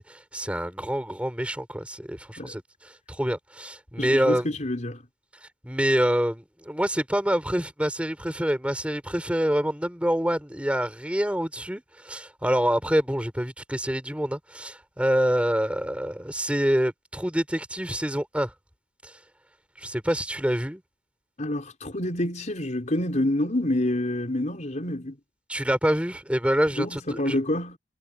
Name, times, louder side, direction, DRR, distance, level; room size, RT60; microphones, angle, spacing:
voice 1, 0.0-4.5 5.6-18.5 19.0-19.1 19.8-20.8 25.5-27.4, equal, 5° right, 4.8 m, -26 dB
voice 2, 4.0-5.0 21.4-25.2 26.8-27.8, left 1 dB, 40° left, 4.3 m, -27 dB
head